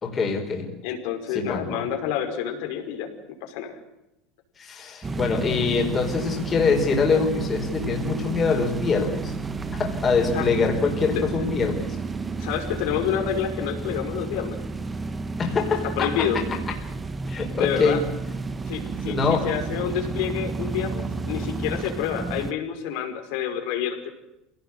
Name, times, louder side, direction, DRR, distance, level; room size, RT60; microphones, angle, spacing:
voice 1, 0.0-0.7 1.3-1.8 4.6-9.3 9.7-11.9 15.4-16.4 17.3-18.0 19.1-19.5, left 4 dB, 20° left, 2 dB, 4.6 m, -24 dB
voice 2, 0.8-3.1 3.4-3.8 10.3-10.5 10.8-11.3 12.4-14.6 15.8-16.4 17.6-18.0 18.7-24.1, left 9 dB, 65° left, 5 dB, 5.3 m, -28 dB
sound 1, 5.0-22.5, right 3 dB, 15° right, 1.1 m, -31 dB
27.5 x 18.0 x 8.1 m, 0.88 s
cardioid pair, 165°, 0 cm